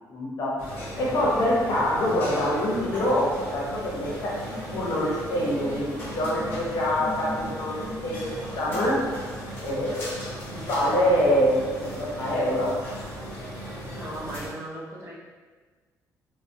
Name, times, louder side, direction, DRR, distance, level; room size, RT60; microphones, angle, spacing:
voice 1, 0.1-0.5 1.0-4.3 4.7-9.0 9.6-10.0 10.5-12.7, equal, 55° left, -5 dB, 0.7 m, -25 dB
sound 1, 0.6-14.5, equal, 35° left, 1.0 m, -37 dB
sound 2, 4.5-9.3, left 1 dB, ahead, 1.1 m, -40 dB
voice 2, 13.9-15.1, right 1 dB, 40° right, -5 dB, 0.5 m, -37 dB
2.4 x 2.0 x 2.5 m, 1.4 s
cardioid pair, 140°, 7 cm